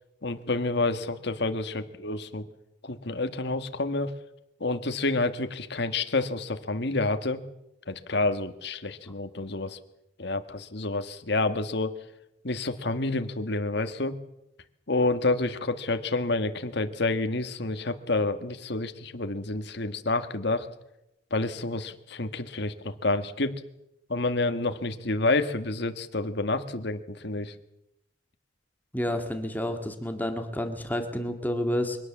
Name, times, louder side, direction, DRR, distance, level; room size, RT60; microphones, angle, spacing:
voice 1, 0.2-2.5 2.8-4.1 4.6-7.4 7.9-9.8 10.2-12.0 12.4-14.2 14.9-20.7 21.3-23.6 24.1-27.5, left 2 dB, 65° left, 8 dB, 1.7 m, -29 dB
voice 2, 28.9-32.0, left 1 dB, 10° left, 5 dB, 2.0 m, -30 dB
23.5 x 18.0 x 7.4 m, 0.87 s
head